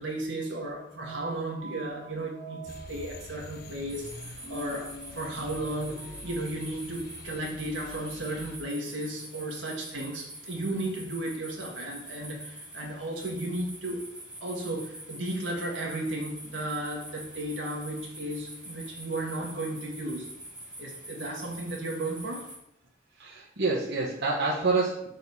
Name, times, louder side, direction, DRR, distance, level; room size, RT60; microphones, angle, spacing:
voice 1, 0.0-14.0 14.4-20.3 20.8-22.5, right 1 dB, 85° right, -1 dB, 1.8 m, -34 dB
sound 1, 0.9-6.6, right 2 dB, 15° left, 2.3 m, -45 dB
sound 2, 2.7-8.6, left 2 dB, 55° left, 0.8 m, -47 dB
sound 3, 3.9-22.6, right 1 dB, 5° right, 2.4 m, -45 dB
voice 2, 23.2-25.1, right 3 dB, 65° right, -6 dB, 1.4 m, -27 dB
6.3 x 4.1 x 5.5 m, 0.75 s
head